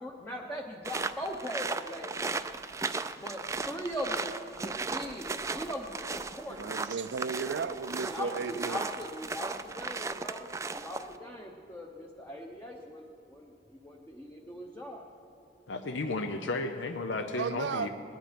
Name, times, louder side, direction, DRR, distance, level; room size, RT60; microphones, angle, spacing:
voice 1, 0.0-2.4 3.2-6.6 7.9-15.0, equal, 10° left, -1 dB, 0.9 m, -40 dB
sound 1, 0.8-11.2, right 4 dB, 15° right, 0.4 m, -36 dB
voice 2, 6.6-8.8 17.4-17.9, right 5 dB, 75° right, 11 dB, 0.4 m, -34 dB
voice 3, 15.7-17.9, left 3 dB, 90° left, 6 dB, 0.7 m, -33 dB
20.0 x 10.5 x 5.2 m, 2.5 s
head